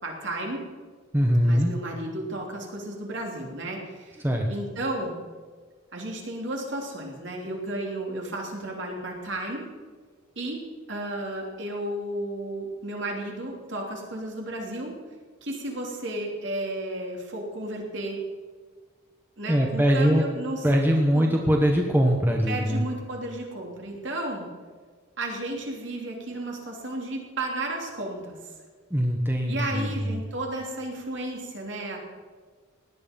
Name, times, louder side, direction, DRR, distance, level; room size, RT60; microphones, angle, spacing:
voice 1, 0.0-0.6 1.4-5.1 5.9-9.6 10.3-10.6 10.9-14.9 15.4-18.2 19.4-20.7 21.1-21.3 22.5-24.5 25.2-28.5 29.5-32.0, right 1 dB, 60° right, 0 dB, 3.1 m, -33 dB
voice 2, 1.1-1.7 4.2-4.5 19.5-20.2 20.6-22.8 28.9-30.0, equal, 10° right, 1 dB, 1.1 m, -22 dB
17.5 x 11.0 x 5.3 m, 1.5 s
head